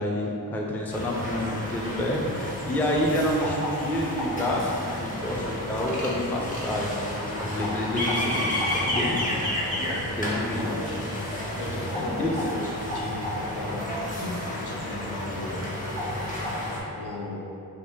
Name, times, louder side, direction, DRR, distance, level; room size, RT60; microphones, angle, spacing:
voice 1, 0.0-9.2 10.1-10.9 12.0-12.3, left 1 dB, 5° left, -2 dB, 0.4 m, -28 dB
sound 1, 0.9-16.8, left 1 dB, 20° left, 0.8 m, -31 dB
voice 2, 9.1-15.6 17.0-17.4, left 2 dB, 70° left, -4 dB, 0.7 m, -36 dB
2.8 x 2.6 x 3.5 m, 2.8 s
cardioid pair, 50°, 40 cm